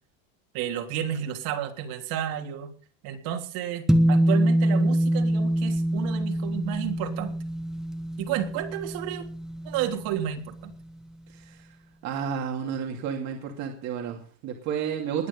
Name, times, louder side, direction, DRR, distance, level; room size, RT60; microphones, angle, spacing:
voice 1, 0.5-2.7 3.0-7.3 8.2-9.3 9.6-10.7, right 10 dB, 60° right, 3 dB, 3.4 m, -31 dB
sound 1, 3.9-10.5, right 1 dB, ahead, 1.3 m, -25 dB
voice 2, 11.3-11.7 12.0-15.3, right 7 dB, 45° right, 2 dB, 2.7 m, -31 dB
20.5 x 9.8 x 5.5 m, 0.41 s
cardioid pair, 165°, 40 cm